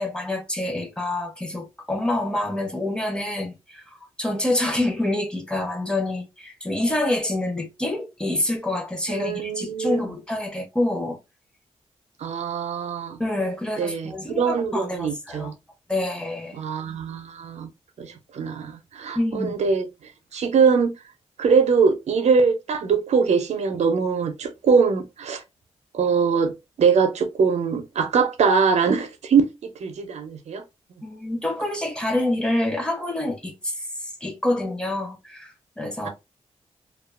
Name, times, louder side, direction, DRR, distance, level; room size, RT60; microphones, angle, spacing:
voice 1, 0.0-3.8 4.2-11.2 13.2-15.5 15.9-16.6 19.1-19.5 31.0-33.8 34.2-36.1, left 1 dB, 10° left, 0.7 m, -27 dB
voice 2, 9.1-10.0 12.2-13.2 13.8-15.5 16.5-17.7 18.0-19.9 20.3-20.9 21.4-25.4 25.9-26.5 26.8-30.6, right 5 dB, 80° right, 0.5 m, -22 dB
2.4 x 2.2 x 2.3 m
wide cardioid pair, 95°, 11 cm